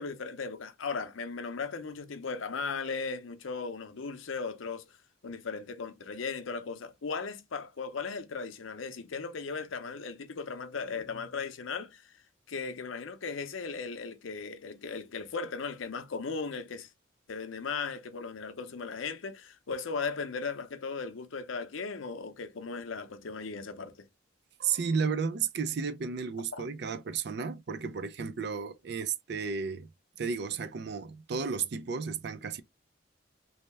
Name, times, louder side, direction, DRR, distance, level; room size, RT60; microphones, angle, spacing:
voice 1, 0.0-4.8 5.2-12.0 12.5-16.9 17.3-24.1 26.5-26.6, left 4 dB, 80° left, 0.6 m, -37 dB
voice 2, 24.6-29.9 30.2-32.6, right 5 dB, 55° right, 0.4 m, -33 dB
3.2 x 2.8 x 3.2 m
head